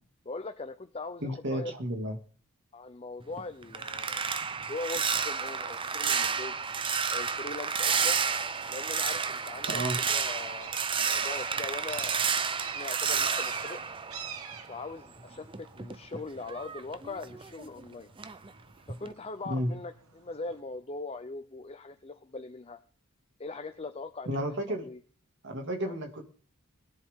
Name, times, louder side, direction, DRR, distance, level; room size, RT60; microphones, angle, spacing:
voice 1, 0.2-1.7 2.7-6.5 7.1-8.2 8.7-9.8 10.1-12.3 12.7-13.8 14.7-18.1 18.9-22.8 23.4-24.4 24.8-25.0 25.8-25.9, left 3 dB, 30° left, 9 dB, 0.7 m, -41 dB
voice 2, 1.2-2.2 9.7-10.0 19.5-19.7 24.3-24.9 25.4-26.3, equal, 55° right, 4 dB, 2.4 m, -32 dB
sound 1, 3.2-14.8 15.2-17.8 18.2-18.5 18.9-19.1, right 6 dB, 25° right, 0.6 m, -31 dB
sound 2, 6.8-20.6, right 7 dB, 80° right, 1.3 m, -48 dB
21.5 x 10.5 x 3.7 m, 0.42 s
head